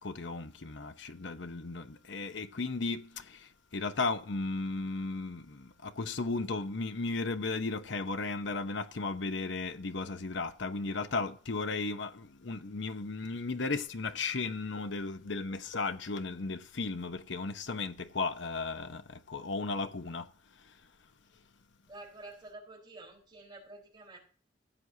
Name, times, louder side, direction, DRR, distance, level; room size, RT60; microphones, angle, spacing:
voice 1, 0.0-20.8, left 3 dB, 75° left, 0.8 m, -35 dB
voice 2, 21.9-24.2, right 2 dB, 25° right, 4.2 m, -49 dB
16.0 x 7.9 x 2.8 m
head